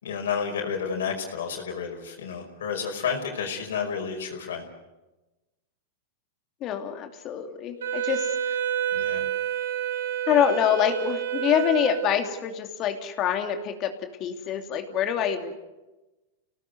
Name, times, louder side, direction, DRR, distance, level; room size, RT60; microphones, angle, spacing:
voice 1, 0.0-4.7 8.9-9.3, left 6 dB, 85° left, 1 dB, 5.1 m, -31 dB
voice 2, 6.6-8.3 10.3-13.9 14.2-15.5, left 9 dB, 40° left, 5 dB, 2.7 m, -25 dB
Wind instrument woodwind instrument, 7.8-12.4, right 9 dB, 80° right, 2.9 m, -29 dB
27.5 x 18.0 x 8.1 m, 1.1 s
hypercardioid pair, 125°, 0 cm